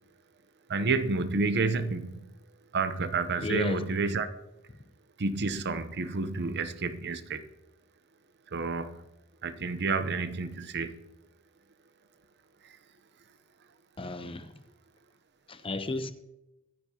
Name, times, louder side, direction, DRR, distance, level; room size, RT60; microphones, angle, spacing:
voice 1, 0.7-2.3 2.7-4.3 5.2-7.5 8.5-9.0 9.4-11.0 12.6-12.8, right 4 dB, 50° right, 0.8 m, -30 dB
voice 2, 3.4-3.8 14.0-14.6 15.5-16.1, left 2 dB, 25° left, 0.7 m, -33 dB
24.0 x 9.7 x 2.9 m
head